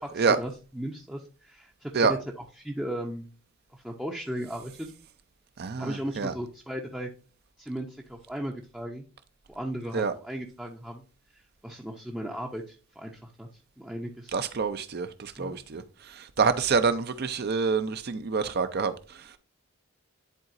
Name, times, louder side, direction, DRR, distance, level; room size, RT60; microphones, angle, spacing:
voice 1, 0.0-2.2 2.6-3.3 3.7-4.9 5.8-7.1 7.6-9.0 9.5-11.0 11.3-13.5 13.8-14.4 15.3-15.6, equal, 5° right, 0.6 m, -36 dB
voice 2, 5.6-6.3 9.9-10.1 14.3-19.3, right 5 dB, 50° right, 0.5 m, -27 dB
10.5 x 3.9 x 2.5 m
head